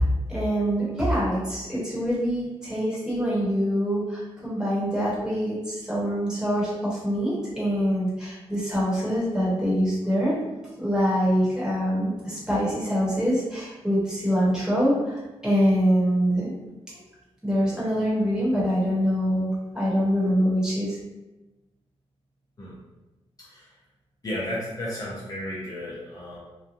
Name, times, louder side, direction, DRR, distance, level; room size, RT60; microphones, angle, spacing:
voice 1, 0.0-10.3 10.8-16.5 17.4-21.0, equal, 5° right, -9 dB, 1.2 m, -24 dB
voice 2, 23.4-23.7 24.2-26.4, left 1 dB, 35° left, -7 dB, 0.6 m, -33 dB
3.0 x 2.3 x 2.5 m, 1.1 s
wide cardioid pair, 130°, 11 cm